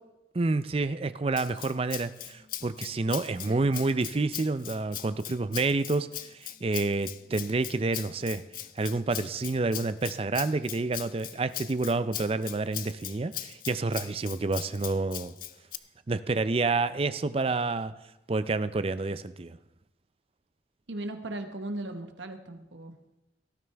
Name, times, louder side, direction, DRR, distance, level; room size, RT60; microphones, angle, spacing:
voice 1, 0.3-6.1 6.6-8.4 8.8-15.3 16.1-17.9 18.3-19.6, right 3 dB, 30° right, 13 dB, 0.5 m, -28 dB
Rattle (instrument), 1.4-15.8, left 13 dB, 50° left, 0.5 m, -40 dB
voice 2, 20.9-22.9, right 1 dB, 90° right, 6 dB, 1.3 m, -37 dB
17.5 x 13.0 x 3.4 m, 0.97 s
head